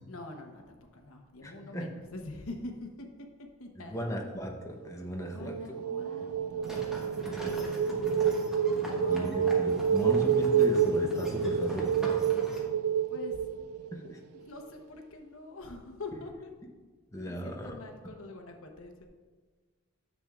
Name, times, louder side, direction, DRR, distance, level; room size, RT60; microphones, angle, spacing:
voice 1, 0.1-3.1 3.6-4.0 5.3-8.6 9.0-10.5 13.1-13.4 14.3-16.5 17.2-19.1, left 2 dB, 75° left, 4 dB, 1.0 m, -45 dB
voice 2, 1.4-1.9 3.9-5.6 9.1-11.9 13.9-14.2 17.1-17.8, equal, 15° left, 0 dB, 0.8 m, -36 dB
sound 1, 5.2-14.1, right 7 dB, 90° right, 0.4 m, -28 dB
sound 2, 6.6-12.6, equal, ahead, 1.1 m, -42 dB
10.5 x 7.4 x 2.4 m, 1.4 s
head